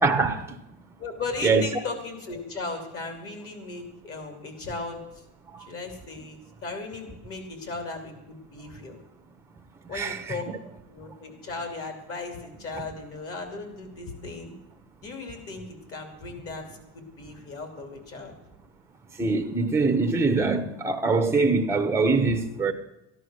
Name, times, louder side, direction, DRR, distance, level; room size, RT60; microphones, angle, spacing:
voice 1, 0.0-0.4 1.4-1.6 9.9-10.2 19.2-22.7, right 4 dB, 5° right, 0.9 m, -23 dB
voice 2, 1.0-5.2 5.6-9.0 9.9-10.5 10.9-14.5 15.0-18.3, left 3 dB, 40° left, 3.0 m, -37 dB
14.0 x 11.0 x 6.4 m
cardioid pair, 150°, 35 cm